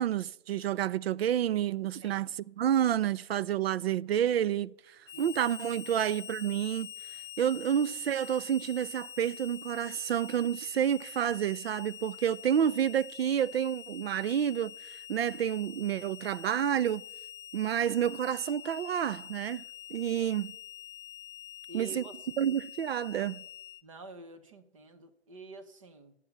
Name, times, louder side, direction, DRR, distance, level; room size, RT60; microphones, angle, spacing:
voice 1, 0.0-2.3 2.6-4.7 5.2-6.9 7.4-14.7 15.1-17.0 17.5-19.6 19.9-20.5 21.7-22.0 22.4-23.4, right 10 dB, 65° right, 0.5 m, -29 dB
voice 2, 2.0-2.4 5.1-5.4 20.2-20.4 21.7-22.2 23.8-26.1, right 2 dB, 30° right, 0.8 m, -48 dB
Harmonica, 5.1-23.8, left 9 dB, 55° left, 0.6 m, -46 dB
9.1 x 7.3 x 8.0 m
hypercardioid pair, 170°, 33 cm